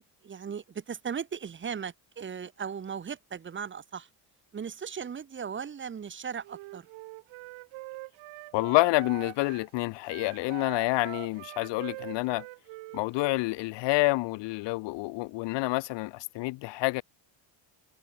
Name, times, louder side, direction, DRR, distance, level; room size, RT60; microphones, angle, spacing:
voice 1, 0.0-4.1 4.5-6.9, right 7 dB, 25° right, 2.8 m, -37 dB
Wind instrument woodwind instrument, 6.4-9.7 10.0-13.4, right 22 dB, 90° right, 5.2 m, -44 dB
voice 2, 8.5-12.4 12.9-17.0, left 22 dB, 70° left, 0.8 m, -28 dB
cardioid pair, 170°, 46 cm